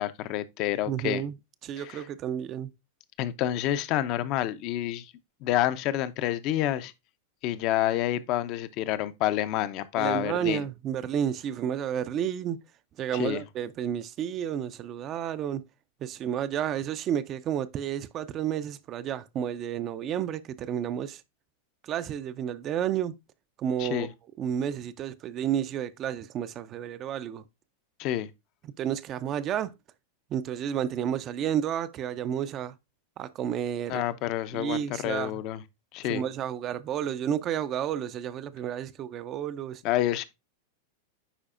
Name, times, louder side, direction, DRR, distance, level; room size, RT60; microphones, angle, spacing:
voice 1, 0.0-1.2 1.8-2.0 3.2-5.1 5.4-6.9 7.4-10.6 13.1-13.4 23.8-24.1 28.0-28.3 33.9-35.6 35.9-36.2 39.8-40.3, left 13 dB, 50° left, 0.6 m, -28 dB
voice 2, 0.9-1.3 1.6-2.7 10.0-12.6 13.0-15.6 16.0-21.2 21.9-23.1 23.6-24.1 24.4-27.4 28.8-29.7 30.3-32.7 33.2-34.0 34.5-35.4 36.0-39.8, right 9 dB, 35° right, 0.5 m, -31 dB
10.0 x 4.0 x 2.5 m
hypercardioid pair, 100°, 0 cm